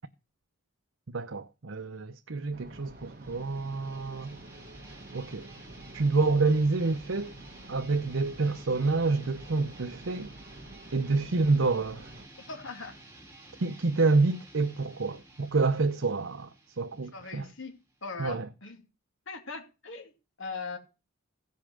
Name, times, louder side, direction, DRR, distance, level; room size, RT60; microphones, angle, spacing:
voice 1, 1.1-4.4 5.1-5.5 5.9-7.3 7.7-10.3 10.9-12.1 13.6-16.5 16.8-17.5 18.2-18.5, right 3 dB, 70° right, 0.8 m, -28 dB
sound 1, 2.5-12.3, right 1 dB, 45° right, 1.2 m, -48 dB
sound 2, 2.8-18.2, right 2 dB, 10° right, 2.3 m, -53 dB
voice 2, 12.4-13.0 17.1-17.7 18.0-18.8 19.3-20.1 20.4-20.8, left 4 dB, 70° left, 2.7 m, -40 dB
16.5 x 5.6 x 6.3 m
head